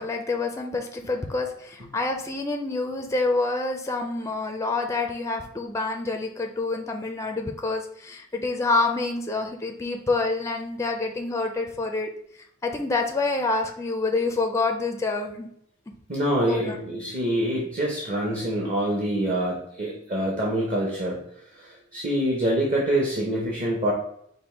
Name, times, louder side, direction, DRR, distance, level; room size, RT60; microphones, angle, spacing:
voice 1, 0.0-12.1 12.6-15.5 16.4-16.8, left 3 dB, 15° left, 3 dB, 0.4 m, -27 dB
voice 2, 16.1-21.2 21.5-23.9, right 1 dB, 40° right, -3 dB, 0.9 m, -25 dB
5.2 x 2.1 x 4.4 m, 0.71 s
head